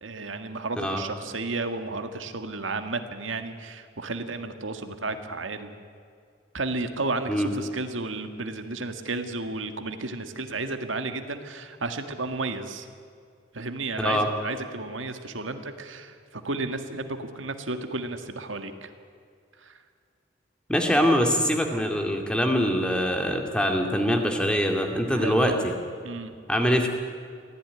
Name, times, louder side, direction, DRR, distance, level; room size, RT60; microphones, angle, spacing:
voice 1, 0.0-5.7 6.5-12.9 13.5-18.9 19.6-19.8 25.1-25.7 26.0-26.4, right 3 dB, 90° right, 7 dB, 1.8 m, -33 dB
voice 2, 20.7-25.7 26.5-26.9, equal, 5° left, 3 dB, 2.3 m, -23 dB
23.5 x 16.0 x 9.7 m, 2.2 s
head